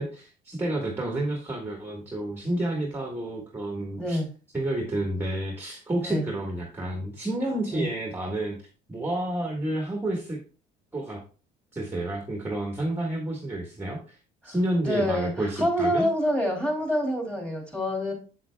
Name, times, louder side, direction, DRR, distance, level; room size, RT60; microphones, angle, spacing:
voice 1, 0.0-4.2 4.5-8.6 8.9-10.4 10.9-11.2 11.7-14.2 14.4-16.1, right 1 dB, 10° right, 1 dB, 1.5 m, -30 dB
voice 2, 4.0-4.3 6.0-6.3 7.7-7.9 14.4-14.5 14.8-18.1, equal, 5° left, 1 dB, 2.7 m, -26 dB
7.6 x 7.5 x 2.2 m, 0.36 s
cardioid pair, 120°, 20 cm